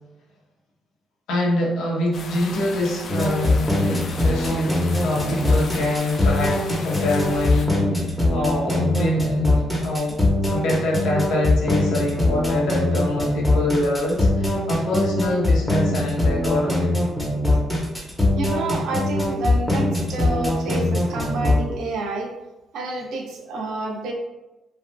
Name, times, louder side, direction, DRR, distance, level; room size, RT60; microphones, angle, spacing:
voice 1, 1.3-7.8 8.3-16.9, left 1 dB, 90° left, -3 dB, 0.8 m, -25 dB
sound 1, 2.1-7.7, left 4 dB, 60° left, 0.4 m, -36 dB
sound 2, 3.1-21.6, left 1 dB, 10° left, 0.8 m, -21 dB
voice 2, 18.3-22.3 22.7-24.1, right 2 dB, 80° right, 1 dB, 0.5 m, -29 dB
3.3 x 2.4 x 2.3 m, 1.0 s
cardioid pair, 90°, 0 cm